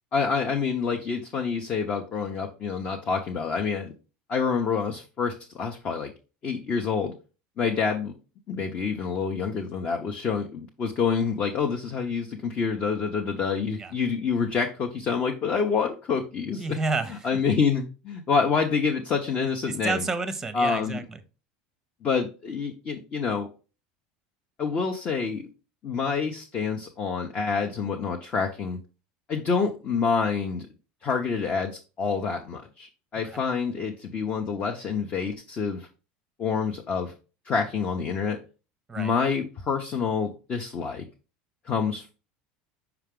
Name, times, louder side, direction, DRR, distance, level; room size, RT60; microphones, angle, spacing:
voice 1, 0.1-3.9 4.3-6.1 6.4-7.1 7.6-8.1 8.5-16.6 17.2-20.0 20.5-21.0 22.0-23.5 24.6-25.5 25.8-28.8 29.3-30.7 31.0-35.9 36.4-37.1 37.4-38.4 39.0-41.0 41.7-42.1, left 5 dB, 35° left, 3 dB, 0.8 m, -27 dB
voice 2, 16.6-17.4 19.7-21.2 33.3-33.4 38.9-39.1, right 3 dB, 10° right, 11 dB, 0.7 m, -30 dB
5.9 x 4.5 x 3.7 m, 0.33 s
supercardioid pair, 135°, 4 cm